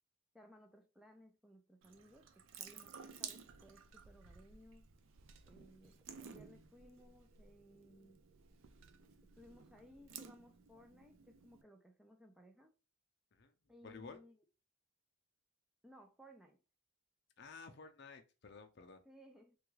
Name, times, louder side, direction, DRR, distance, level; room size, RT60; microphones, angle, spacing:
voice 1, 0.3-4.9 5.5-8.2 9.4-12.7 13.7-14.4 15.8-16.6 19.1-19.6, equal, 5° right, 0.3 m, -61 dB
Water tap faucet / Sink (filling or washing) / Drip, 1.8-11.6, right 7 dB, 70° right, 0.4 m, -55 dB
voice 2, 13.8-14.2 17.4-19.0, left 4 dB, 50° left, 0.5 m, -53 dB
3.4 x 2.3 x 3.1 m
head